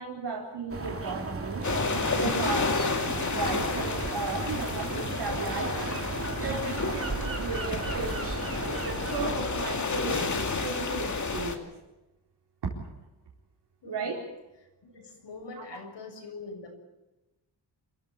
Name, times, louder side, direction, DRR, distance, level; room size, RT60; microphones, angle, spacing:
voice 1, 0.0-1.7 2.1-2.7 3.0-6.0 6.4-8.2 8.6-11.7 12.6-12.9 13.8-14.2 15.6-15.7, right 4 dB, 70° right, -3 dB, 4.4 m, -35 dB
sound 1, 0.7-9.3, right 3 dB, 30° right, 2.8 m, -35 dB
sound 2, 1.6-11.6, left 4 dB, 40° left, 2.5 m, -31 dB
voice 2, 13.8-14.1 14.8-16.7, left 3 dB, 80° left, 3 dB, 7.0 m, -43 dB
27.5 x 14.5 x 8.4 m, 1.0 s
wide cardioid pair, 135°, 43 cm